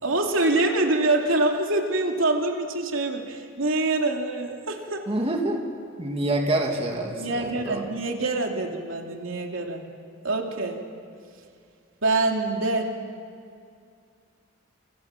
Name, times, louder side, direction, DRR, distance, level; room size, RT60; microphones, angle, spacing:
voice 1, 0.0-5.1 7.1-9.8 10.2-10.8 12.0-12.9, right 2 dB, 80° right, 2 dB, 2.8 m, -25 dB
voice 2, 5.1-5.7 6.0-7.9, right 1 dB, 30° right, 1 dB, 2.5 m, -27 dB
29.5 x 28.0 x 6.0 m, 2.4 s
head